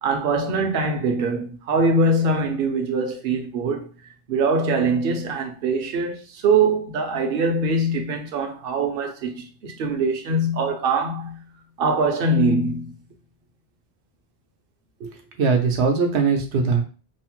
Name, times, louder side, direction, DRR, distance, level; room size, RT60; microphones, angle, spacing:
voice 1, 0.0-3.9 4.3-11.4 11.8-12.9, right 3 dB, 65° right, 0.8 m, -23 dB
voice 2, 15.0-16.8, right 5 dB, 90° right, 1.0 m, -21 dB
3.0 x 2.1 x 2.9 m
omnidirectional pair, 1.1 m